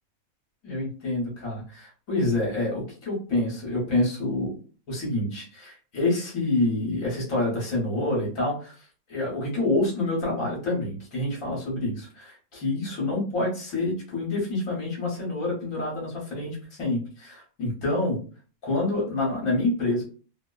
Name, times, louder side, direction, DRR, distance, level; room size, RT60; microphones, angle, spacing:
voice 1, 0.6-4.5 4.9-8.7 9.1-18.2 18.6-20.0, left 2 dB, 65° left, -4 dB, 1.4 m, -27 dB
2.9 x 2.0 x 2.2 m, 0.38 s
omnidirectional pair, 1.5 m